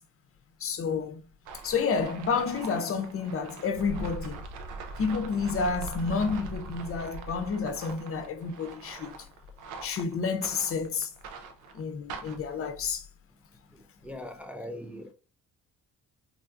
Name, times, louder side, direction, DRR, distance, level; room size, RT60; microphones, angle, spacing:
voice 1, 0.6-1.2 1.6-4.4 5.0-9.1 9.8-11.1 11.7-13.0, left 5 dB, 50° left, 0.6 m, -30 dB
sound 1, 1.5-12.6, right 3 dB, 80° right, 0.5 m, -41 dB
voice 2, 13.7-15.1, left 1 dB, 5° right, 0.3 m, -41 dB
3.5 x 2.3 x 2.5 m
cardioid pair, 90°, 30 cm